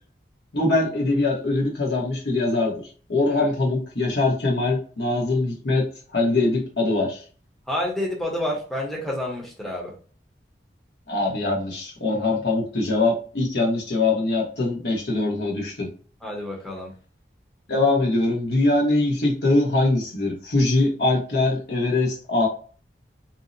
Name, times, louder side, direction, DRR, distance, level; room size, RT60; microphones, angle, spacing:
voice 1, 0.5-7.2 11.1-15.9 17.7-22.5, left 2 dB, 70° left, -1 dB, 1.0 m, -22 dB
voice 2, 7.7-9.9 16.2-16.9, left 1 dB, ahead, -3 dB, 0.6 m, -29 dB
2.7 x 2.0 x 2.5 m, 0.39 s
head